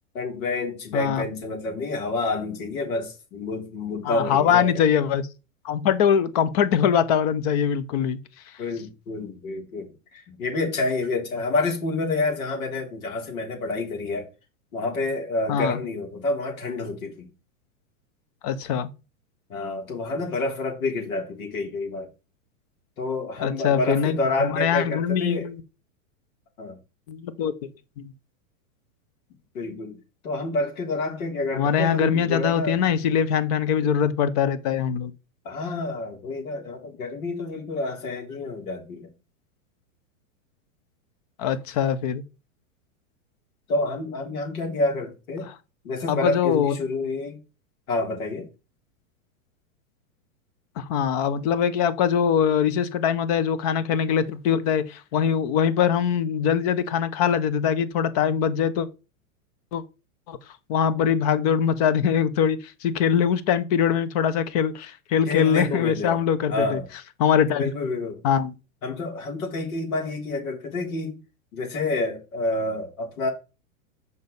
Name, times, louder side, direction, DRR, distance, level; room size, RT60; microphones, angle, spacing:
voice 1, 0.1-4.8 8.6-14.3 14.7-17.3 19.5-22.1 23.0-25.5 26.6-26.8 29.5-30.0 30.2-32.8 35.5-39.1 43.7-45.5 45.8-47.4 47.9-48.5 65.3-66.2 66.5-66.9 67.6-68.2 68.8-71.2 71.5-73.3, left 2 dB, 75° left, 3.6 m, -28 dB
voice 2, 0.9-1.2 4.0-5.3 5.6-8.2 15.5-15.8 18.4-18.9 23.4-25.6 27.1-27.5 28.0-28.1 31.5-35.1 41.4-42.2 45.4-45.5 46.1-46.7 50.8-58.9 59.7-59.8 60.3-60.4 60.7-66.8 67.2-67.6 68.2-68.5, left 8 dB, 30° left, 0.5 m, -22 dB
6.7 x 5.4 x 3.9 m
supercardioid pair, 160°, 42 cm